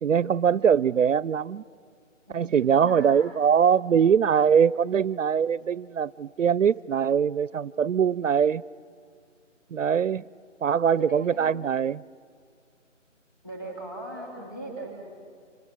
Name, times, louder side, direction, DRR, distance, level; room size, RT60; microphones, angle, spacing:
voice 1, 0.0-1.6 2.3-8.6 9.7-10.2 10.6-12.0, right 7 dB, 75° right, 0.5 m, -22 dB
voice 2, 2.3-3.5 11.0-11.5 13.4-14.9, right 1 dB, 15° left, 2.7 m, -39 dB
26.0 x 25.0 x 6.0 m
figure-of-eight pair, 175°, 39 cm